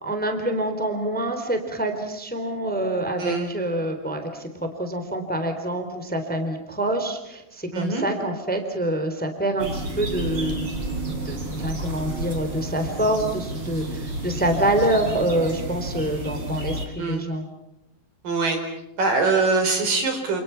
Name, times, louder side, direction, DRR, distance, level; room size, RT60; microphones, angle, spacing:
voice 1, 0.0-4.5 4.8-10.7 11.2-16.8 17.1-17.4, right 1 dB, 5° left, 6 dB, 3.1 m, -26 dB
voice 2, 3.2-3.5 7.7-8.1 17.0-17.2 18.2-18.6 19.0-20.4, right 3 dB, 70° right, 5 dB, 6.1 m, -23 dB
sound 1, 9.6-16.9, right 1 dB, 35° right, 4.6 m, -31 dB
29.0 x 28.5 x 5.9 m, 0.89 s
omnidirectional pair, 4.1 m